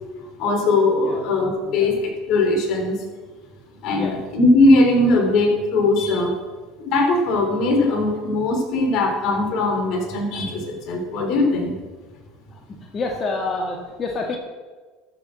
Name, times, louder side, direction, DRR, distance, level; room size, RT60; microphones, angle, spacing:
voice 1, 0.4-3.0 3.8-6.3 6.8-11.7, left 2 dB, 60° left, 3 dB, 3.5 m, -19 dB
voice 2, 12.9-14.3, left 3 dB, 30° left, 0 dB, 1.7 m, -28 dB
13.0 x 6.9 x 7.6 m, 1.4 s
supercardioid pair, 100°, 0 cm